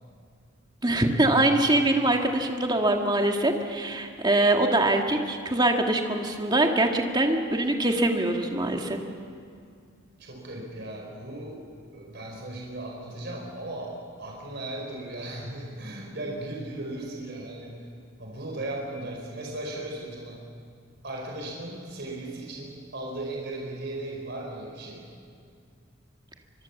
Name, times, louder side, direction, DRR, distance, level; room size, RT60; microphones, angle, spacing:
voice 1, 0.8-9.0, right 1 dB, 20° right, 3 dB, 1.9 m, -23 dB
voice 2, 10.2-11.7 11.9-13.9 14.2-17.8 18.2-20.5 21.0-25.1, right 1 dB, 55° right, -1 dB, 4.8 m, -37 dB
25.0 x 22.5 x 7.3 m, 2.3 s
head